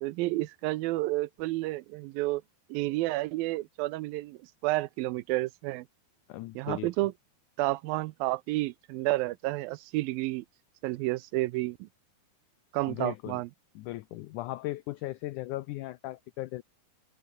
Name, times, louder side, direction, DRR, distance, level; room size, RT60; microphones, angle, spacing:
voice 1, 0.0-2.4 2.7-5.9 6.6-7.1 7.6-10.5 10.8-11.9 12.7-13.5, right 19 dB, 80° right, 2.3 m, -30 dB
voice 2, 6.3-6.9 12.9-13.4 13.8-16.6, left 17 dB, 85° left, 1.7 m, -37 dB
omnidirectional pair, 4.3 m